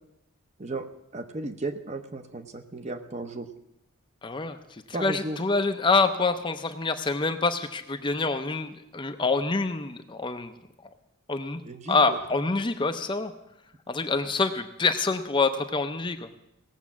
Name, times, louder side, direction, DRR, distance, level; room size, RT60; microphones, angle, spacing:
voice 1, 1.1-3.5 4.9-5.4 11.6-12.2, right 2 dB, 30° right, 8 dB, 0.8 m, -34 dB
voice 2, 4.2-4.6 4.9-10.5 11.3-11.6 11.9-13.3 13.9-16.4, left 3 dB, 20° left, 7 dB, 0.5 m, -26 dB
17.5 x 7.3 x 7.2 m, 0.88 s
head